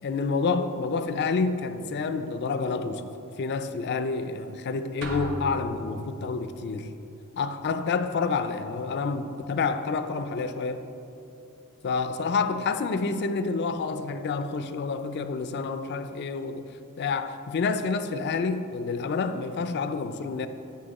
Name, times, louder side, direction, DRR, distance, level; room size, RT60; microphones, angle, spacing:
voice 1, 0.0-3.1 3.4-6.9 7.4-10.9 11.8-16.7 17.0-20.5, left 4 dB, 50° left, 0.4 m, -28 dB
sound 1, 5.0-6.5, right 1 dB, 55° right, 0.9 m, -36 dB
8.7 x 6.4 x 4.0 m
head